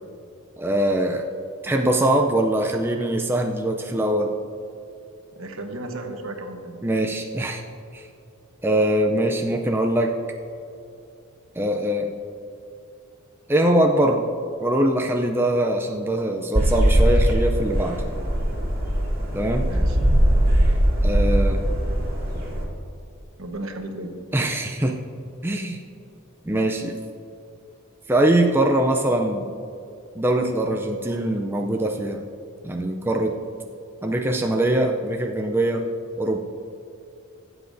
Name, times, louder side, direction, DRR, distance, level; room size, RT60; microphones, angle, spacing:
voice 1, 0.6-1.3 1.6-4.3 6.8-7.6 7.9-8.1 8.6-10.1 11.6-12.1 13.5-14.2 14.6-18.0 19.3-19.7 21.0-21.6 24.3-25.0 25.4-25.8 26.5-27.0 28.1-29.5 30.2-32.2 32.6-33.4 34.0-35.9 36.2-36.4, right 1 dB, 10° right, 1 dB, 0.4 m, -22 dB
voice 2, 5.3-6.8 19.7-20.0 23.4-24.2, right 1 dB, 65° right, 4 dB, 1.0 m, -34 dB
sound 1, 16.5-22.6, right 1 dB, 45° right, 2.1 m, -20 dB
16.5 x 8.0 x 2.6 m, 2.6 s
head